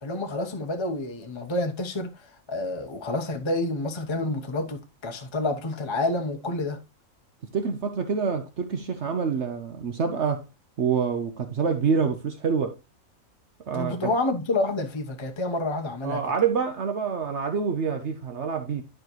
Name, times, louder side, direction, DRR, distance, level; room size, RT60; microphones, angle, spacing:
voice 1, 0.0-6.8 13.7-16.2, left 2 dB, 25° left, 0.9 m, -29 dB
voice 2, 7.5-10.4 10.8-12.7 13.7-14.1 16.0-18.8, right 6 dB, 60° right, 1.1 m, -26 dB
11.5 x 5.0 x 3.0 m
omnidirectional pair, 1.4 m